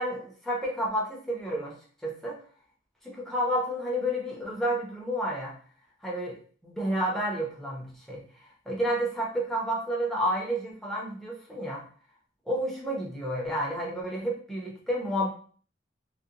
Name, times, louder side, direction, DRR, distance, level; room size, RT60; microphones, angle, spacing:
voice 1, 0.0-1.8 2.0-2.4 3.0-5.5 6.0-11.8 12.5-15.3, equal, ahead, -4 dB, 0.6 m, -30 dB
2.4 x 2.1 x 2.8 m, 0.43 s
head